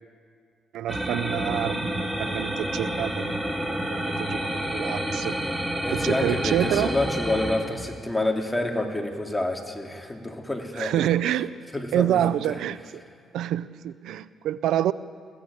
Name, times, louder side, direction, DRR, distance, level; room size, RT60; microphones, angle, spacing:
voice 1, 0.7-3.1 3.6-5.3 5.9-6.9 10.8-11.6 11.9-13.0 13.3-14.9, right 11 dB, 80° right, 16 dB, 0.5 m, -27 dB
sound 1, 0.9-7.6, right 1 dB, 5° right, 3.6 m, -29 dB
voice 2, 5.8-11.1 11.7-12.6, left 2 dB, 10° left, 3 dB, 2.7 m, -28 dB
21.5 x 15.0 x 8.6 m, 2.2 s
cardioid pair, 90°, 0 cm